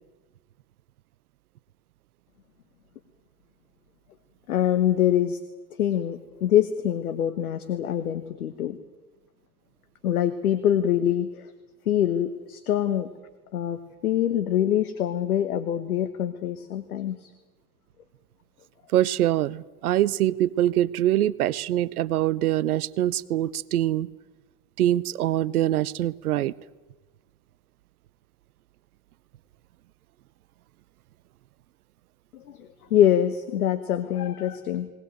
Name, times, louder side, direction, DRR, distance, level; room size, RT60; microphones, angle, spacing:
voice 1, 4.5-5.4 5.8-8.8 10.0-11.5 11.9-13.1 13.5-17.3 32.3-34.9, left 10 dB, 85° left, 11 dB, 1.3 m, -24 dB
voice 2, 18.9-24.1 24.8-26.5, right 13 dB, 85° right, 21 dB, 0.7 m, -24 dB
20.5 x 19.0 x 9.1 m, 1.2 s
hypercardioid pair, 70°, 43 cm